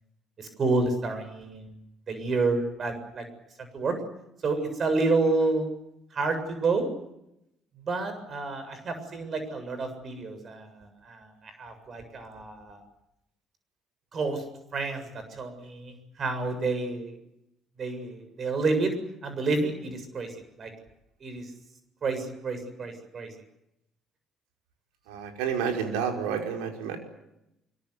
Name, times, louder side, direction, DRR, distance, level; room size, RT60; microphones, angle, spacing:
voice 1, 0.4-3.2 3.7-3.9 4.4-5.7 6.1-6.9 7.8-12.8 14.1-14.4 14.7-17.1 17.8-18.9 19.2-20.7 21.2-21.5 22.0-23.3, right 3 dB, 50° right, 8 dB, 7.4 m, -29 dB
voice 2, 25.1-27.0, right 7 dB, 80° right, 3 dB, 5.2 m, -30 dB
25.0 x 23.5 x 8.3 m, 0.84 s
hypercardioid pair, 55°, 0 cm